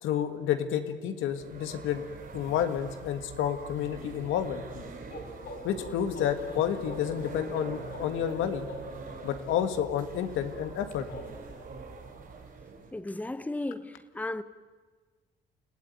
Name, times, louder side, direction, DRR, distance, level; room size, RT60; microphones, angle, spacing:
voice 1, 0.0-2.0 2.3-4.6 5.6-8.7 9.2-11.1, left 9 dB, 90° left, 1.9 m, -30 dB
sound 1, 1.3-12.9, right 5 dB, 45° right, 6.0 m, -44 dB
sound 2, 4.7-12.5, left 2 dB, 55° left, 4.4 m, -46 dB
voice 2, 12.9-14.4, left 2 dB, 5° left, 0.9 m, -35 dB
29.0 x 15.5 x 9.4 m
cardioid pair, 90°, 20 cm